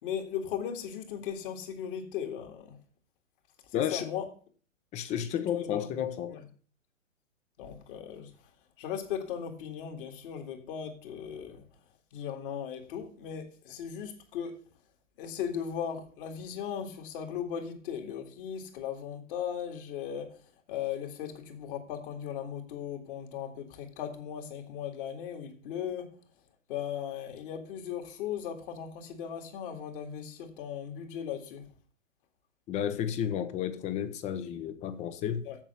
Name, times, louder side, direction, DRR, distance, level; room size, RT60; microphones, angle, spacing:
voice 1, 0.0-2.8 3.7-4.3 5.5-5.9 6.3-6.4 7.6-8.3 8.8-11.6 12.1-14.6 15.2-20.4 20.7-26.1 26.7-31.6 35.5-35.6, left 8 dB, 45° left, 2.2 m, -37 dB
voice 2, 3.7-4.1 4.9-6.4 32.7-35.5, left 9 dB, 15° left, 0.7 m, -32 dB
7.4 x 7.2 x 6.7 m
hypercardioid pair, 125°, 39 cm